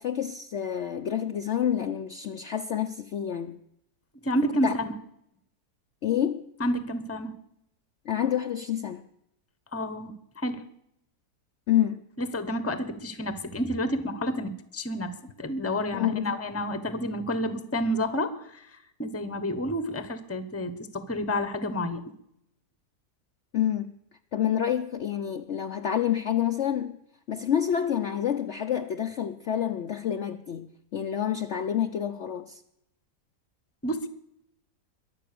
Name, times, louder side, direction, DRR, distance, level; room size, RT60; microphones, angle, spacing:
voice 1, 0.0-3.6 4.6-4.7 6.0-6.5 8.1-9.1 11.7-12.0 15.9-16.4 23.5-23.9 24.3-27.0 27.3-32.6, left 10 dB, 60° left, 0.8 m, -28 dB
voice 2, 4.2-4.9 6.6-7.3 9.7-10.6 12.2-18.7 19.0-22.0 33.8-34.1, equal, 10° left, 0.9 m, -30 dB
22.0 x 7.7 x 6.8 m
omnidirectional pair, 1.7 m